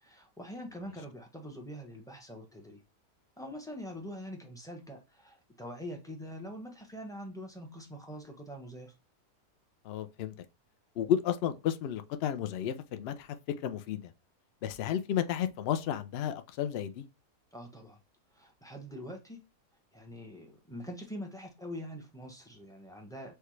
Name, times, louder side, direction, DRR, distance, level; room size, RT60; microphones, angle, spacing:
voice 1, 0.0-2.8 3.4-9.0 17.5-18.0 18.3-19.4 19.9-23.3, equal, 5° left, 0.4 m, -44 dB
voice 2, 9.8-10.3 11.0-13.4 13.6-14.1 14.6-17.1, left 10 dB, 85° left, 0.5 m, -32 dB
6.6 x 2.2 x 3.1 m
omnidirectional pair, 1.6 m